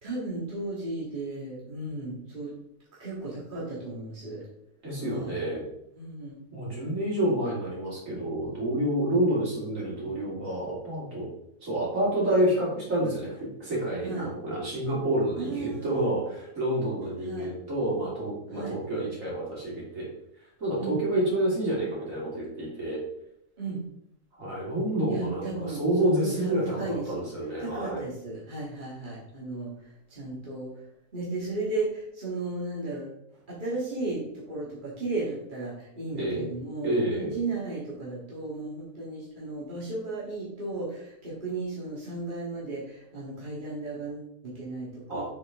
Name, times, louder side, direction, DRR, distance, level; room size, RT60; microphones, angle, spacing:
voice 1, 0.0-2.5 3.0-4.4 5.0-5.4 6.0-6.4 14.0-14.3 15.4-16.1 17.0-17.5 18.5-18.8 20.8-21.0 23.6-23.8 25.1-27.2 27.6-30.7 31.1-33.2 33.5-45.2, right 2 dB, 35° right, -7 dB, 2.3 m, -35 dB
voice 2, 4.8-5.7 6.5-11.3 11.6-13.3 13.6-20.1 20.6-23.0 24.4-28.0 36.1-36.5 36.8-37.4 45.1-45.2, right 1 dB, 65° right, -6 dB, 3.4 m, -28 dB
7.7 x 5.8 x 3.7 m, 0.77 s
omnidirectional pair, 1.5 m